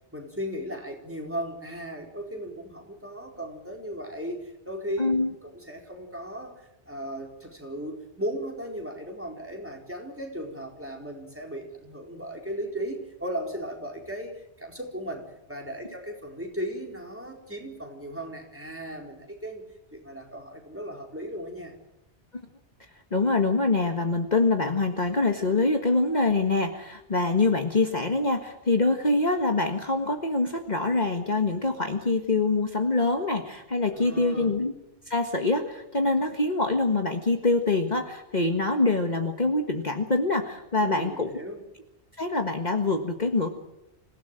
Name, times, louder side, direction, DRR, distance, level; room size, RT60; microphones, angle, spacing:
voice 1, 0.1-5.1 5.4-19.6 19.9-21.7 33.9-34.5 40.8-41.6, equal, 10° right, 1 dB, 4.4 m, -36 dB
voice 2, 5.0-5.3 23.1-34.7 35.1-41.3 42.2-43.5, left 3 dB, 40° left, 5 dB, 1.7 m, -25 dB
26.5 x 17.0 x 7.7 m, 0.91 s
omnidirectional pair, 1.2 m